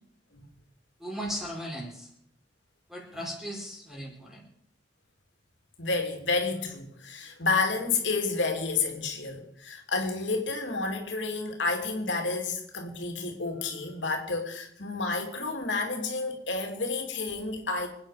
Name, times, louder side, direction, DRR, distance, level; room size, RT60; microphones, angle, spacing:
voice 1, 1.0-2.1 2.9-4.5, equal, ahead, -2 dB, 4.7 m, -37 dB
voice 2, 5.8-17.9, left 3 dB, 85° left, 3 dB, 2.8 m, -30 dB
26.0 x 9.5 x 5.1 m, 0.71 s
head